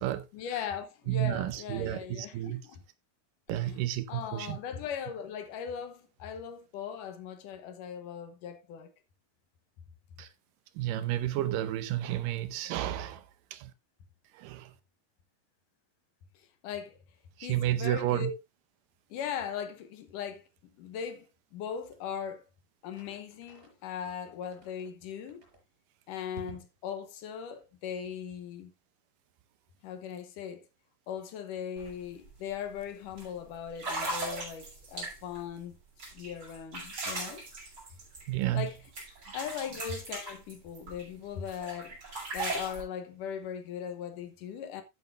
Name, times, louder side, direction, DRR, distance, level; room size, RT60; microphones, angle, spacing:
voice 1, 0.3-2.8 3.5-8.9 16.6-17.0 17.4-18.3 19.1-20.5 20.8-22.5 22.8-25.4 26.1-28.7 29.8-30.7 31.1-35.8 36.1-37.4 38.5-38.8 39.3-42.0 42.3-44.8, left 8 dB, 70° left, 2.6 m, -39 dB
voice 2, 1.1-2.6 3.5-4.6 10.2-10.3 10.8-13.2 13.5-13.7 14.4-14.7 17.4-18.3 38.3-38.7, right 13 dB, 75° right, 2.4 m, -31 dB
sound 1, 22.9-23.7 24.0-24.9 25.3-25.6 26.4-26.8, equal, 15° right, 5.6 m, -51 dB
sound 2, 31.8-31.9 32.2-32.5 33.2-33.3 33.7-35.4 36.0-38.7 39.0-41.0 41.5-42.8, right 2 dB, 35° right, 6.6 m, -38 dB
12.5 x 8.5 x 2.6 m
omnidirectional pair, 4.0 m